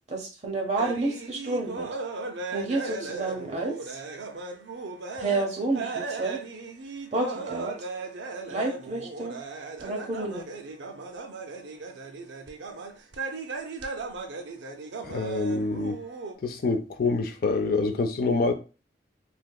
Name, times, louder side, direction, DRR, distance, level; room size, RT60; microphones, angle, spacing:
voice 1, 0.1-1.9 2.5-4.0 5.2-6.4 7.1-7.7 8.5-9.3 9.8-10.5, right 2 dB, 40° right, 0.8 m, -30 dB
sound 1, 0.8-16.3, right 3 dB, 85° right, 0.5 m, -37 dB
voice 2, 15.0-16.0 16.4-18.5, left 3 dB, 55° left, 0.5 m, -26 dB
3.4 x 2.8 x 2.3 m
head